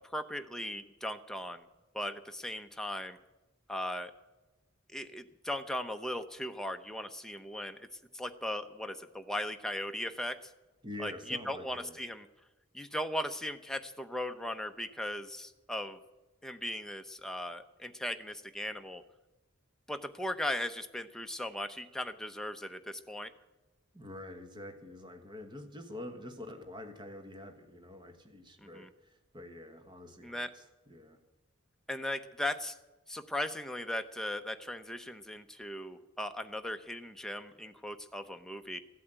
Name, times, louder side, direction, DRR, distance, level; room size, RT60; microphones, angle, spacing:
voice 1, 0.1-1.7 1.9-3.2 3.7-4.1 4.9-7.9 8.1-10.5 11.0-12.3 12.7-16.0 16.4-19.0 19.9-23.3 28.6-28.9 30.2-30.5 31.9-32.8 33.1-38.8, left 1 dB, 5° left, 6 dB, 0.7 m, -38 dB
voice 2, 10.8-12.0 23.9-31.2, left 1 dB, 25° right, 6 dB, 1.4 m, -46 dB
15.0 x 8.4 x 8.9 m, 1.1 s
head